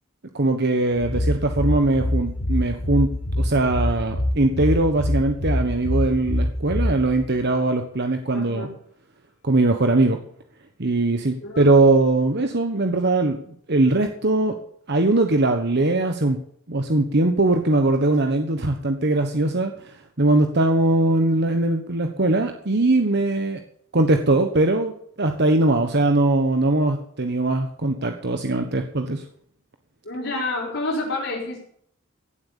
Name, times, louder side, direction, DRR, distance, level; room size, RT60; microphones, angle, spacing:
voice 1, 0.3-3.1 3.4-8.7 9.4-10.2 10.8-13.4 13.7-14.5 14.9-16.4 16.7-23.6 23.9-24.9 25.2-29.2, right 2 dB, 55° right, 5 dB, 1.3 m, -21 dB
sound 1, 0.9-7.4, left 1 dB, 85° left, 4.1 m, -25 dB
voice 2, 8.3-8.7 11.4-11.7 30.1-31.6, left 2 dB, 65° left, -7 dB, 5.4 m, -28 dB
16.5 x 8.0 x 7.0 m, 0.65 s
head